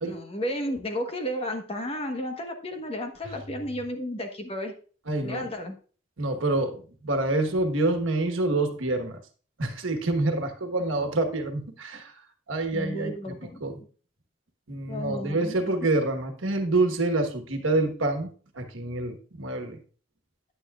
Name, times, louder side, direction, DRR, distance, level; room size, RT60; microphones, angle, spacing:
voice 1, 0.0-4.7 5.2-5.7 12.7-13.7 14.9-15.8, equal, 30° left, 4 dB, 1.2 m, -33 dB
voice 2, 5.1-5.5 6.2-9.2 9.6-12.1 12.5-13.8 14.7-18.3 18.6-19.8, right 2 dB, 90° right, 6 dB, 1.3 m, -27 dB
9.7 x 9.0 x 2.4 m, 0.41 s
head